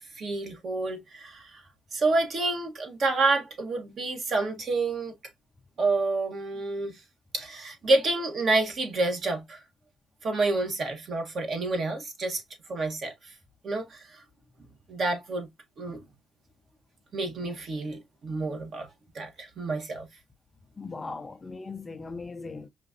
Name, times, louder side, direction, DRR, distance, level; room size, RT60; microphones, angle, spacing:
voice 1, 0.0-1.5 1.9-5.1 5.8-6.9 7.3-9.6 10.2-12.4 12.7-13.1 13.6-14.2 14.9-15.5 15.8-16.0 17.1-18.9 19.1-20.1, right 3 dB, 55° right, 1.3 m, -28 dB
voice 2, 20.8-22.7, left 4 dB, 30° left, 0.4 m, -38 dB
5.0 x 2.4 x 2.5 m
cardioid pair, 90°, 0 cm